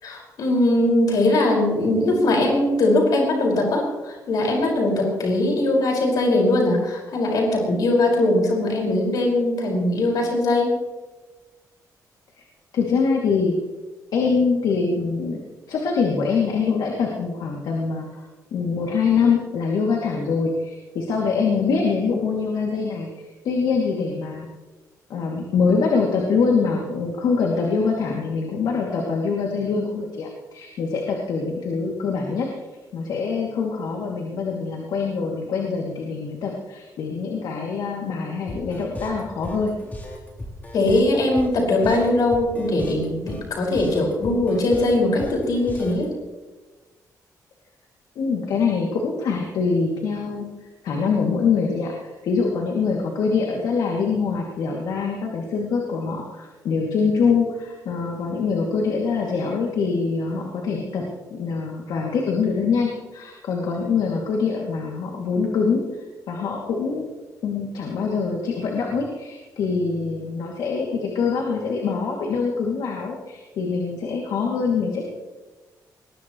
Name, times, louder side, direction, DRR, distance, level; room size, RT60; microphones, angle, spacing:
voice 1, 0.0-10.8 40.7-46.1, left 2 dB, 65° left, -1 dB, 5.6 m, -20 dB
voice 2, 12.7-13.6 14.1-15.4 15.7-18.2 18.5-23.1 23.4-24.5 25.1-32.5 32.9-39.7 48.2-50.5 50.8-61.0 61.3-65.8 66.3-67.1 67.4-75.1, left 5 dB, 90° left, -1 dB, 2.7 m, -24 dB
sound 1, 38.5-46.1, left 1 dB, 25° left, 3.7 m, -37 dB
21.5 x 21.0 x 3.2 m, 1.2 s
wide cardioid pair, 165°, 7 cm